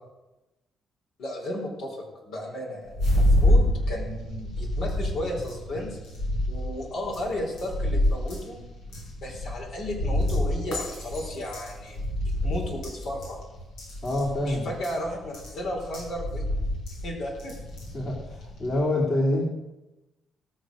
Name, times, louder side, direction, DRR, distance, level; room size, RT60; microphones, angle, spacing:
voice 1, 1.2-6.0 6.5-8.6 9.2-13.4 14.4-16.4 17.0-17.6, left 1 dB, 75° left, 0 dB, 4.5 m, -34 dB
sound 1, 2.9-18.8, left 1 dB, 90° left, 4.9 m, -28 dB
voice 2, 14.0-14.8 17.9-19.4, left 1 dB, 45° left, -4 dB, 3.3 m, -26 dB
18.0 x 6.5 x 6.5 m, 1.0 s
cardioid pair, 90°, 0 cm